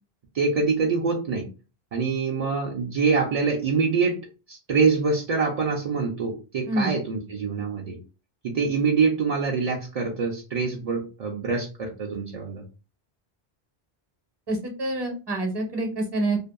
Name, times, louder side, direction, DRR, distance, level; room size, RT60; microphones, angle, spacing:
voice 1, 0.3-1.4 1.9-4.2 4.5-8.0 8.4-12.6, right 4 dB, 55° right, 0 dB, 0.4 m, -25 dB
voice 2, 14.5-16.4, right 2 dB, 25° right, 3 dB, 0.7 m, -27 dB
2.6 x 2.5 x 2.3 m, 0.33 s
omnidirectional pair, 1.1 m